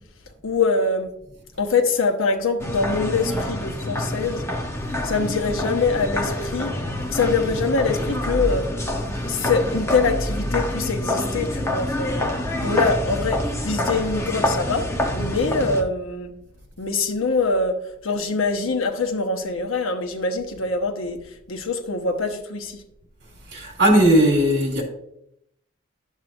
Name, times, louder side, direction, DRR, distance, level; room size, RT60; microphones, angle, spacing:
voice 1, 0.4-1.1 1.6-4.5 5.0-6.7 7.1-8.7 9.2-12.3 12.6-14.9 15.1-16.3 16.8-17.8 18.0-21.2 21.5-22.8, left 4 dB, 75° left, 1.0 m, -24 dB
sound 1, 2.6-15.8, left 1 dB, 15° left, 0.8 m, -26 dB
voice 2, 23.5-24.8, right 1 dB, 60° right, 2.9 m, -17 dB
11.0 x 7.4 x 2.6 m
head